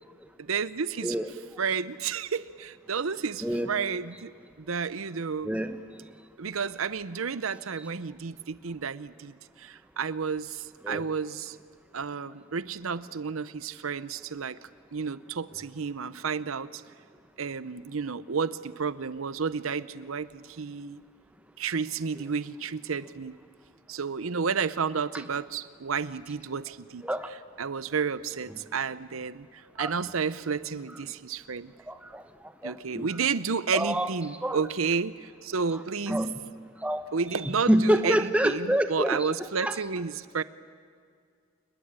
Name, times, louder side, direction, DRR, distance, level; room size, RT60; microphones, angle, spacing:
voice 1, 0.4-1.1 1.6-4.3 4.6-5.5 6.4-11.6 11.9-14.6 14.9-16.8 17.4-21.0 21.6-23.3 23.9-27.0 27.6-29.5 29.8-31.7 32.6-36.3 37.1-40.4, right 5 dB, 90° right, 16 dB, 0.7 m, -31 dB
voice 2, 5.4-5.8 10.8-11.0 27.0-27.3 29.8-29.9 31.9-32.2 32.6-33.1 33.7-34.1 34.4-34.6 36.1-36.3 36.8-37.0 37.7-39.3 39.6-39.7, equal, 5° right, 9 dB, 1.1 m, -26 dB
28.5 x 21.0 x 8.9 m, 2.1 s
head